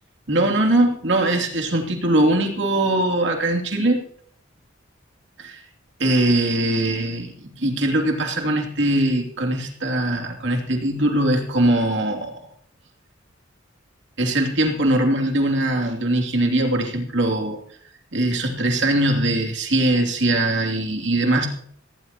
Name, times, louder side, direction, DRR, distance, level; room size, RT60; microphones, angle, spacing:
voice 1, 0.3-4.0 5.4-5.6 6.0-12.4 14.2-17.6 18.1-21.5, right 1 dB, 65° right, 1 dB, 2.9 m, -21 dB
19.0 x 17.0 x 3.0 m, 0.62 s
head